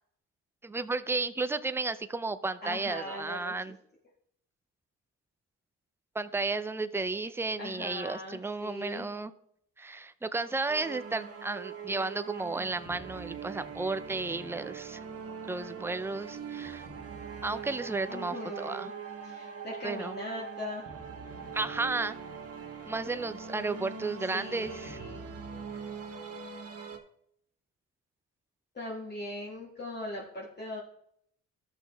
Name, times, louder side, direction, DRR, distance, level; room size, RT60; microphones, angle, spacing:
voice 1, 0.6-3.8 6.1-9.3 9.8-15.0 15.4-16.8 17.4-18.9 19.8-20.2 21.5-22.2 22.9-25.0, right 3 dB, 10° right, 12 dB, 0.5 m, -33 dB
voice 2, 2.6-3.5 7.6-9.1 18.1-18.9 19.2-20.9 24.3-25.2 25.7-25.8 28.7-30.8, left 1 dB, 35° left, -4 dB, 2.0 m, -40 dB
sound 1, 10.7-27.0, right 6 dB, 50° right, 1.5 m, -42 dB
13.0 x 6.3 x 3.4 m, 0.70 s
cardioid pair, 90°, 30 cm